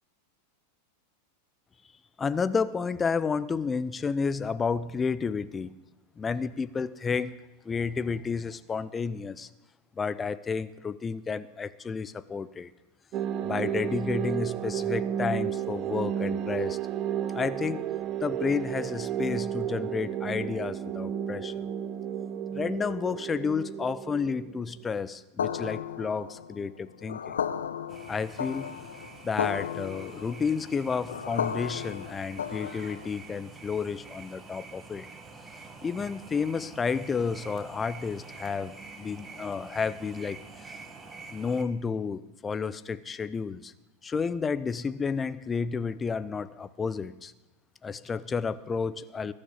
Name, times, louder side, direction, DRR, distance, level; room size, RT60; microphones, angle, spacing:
voice 1, 2.2-5.7 6.2-7.4 7.6-9.5 10.0-12.7 13.4-16.8 17.3-17.9 18.2-21.7 22.5-27.3 28.1-28.8 29.2-35.1 35.8-40.8 41.3-43.7 44.0-47.3 47.8-49.3, left 5 dB, 15° left, 15 dB, 0.7 m, -31 dB
sound 1, 13.1-24.9, right 9 dB, 35° right, 0.9 m, -32 dB
sound 2, 25.4-33.2, left 8 dB, 65° left, 0.8 m, -34 dB
sound 3, 27.9-41.6, right 3 dB, 15° right, 1.7 m, -47 dB
21.0 x 12.0 x 5.6 m, 1.1 s
figure-of-eight pair, 90°, 0 cm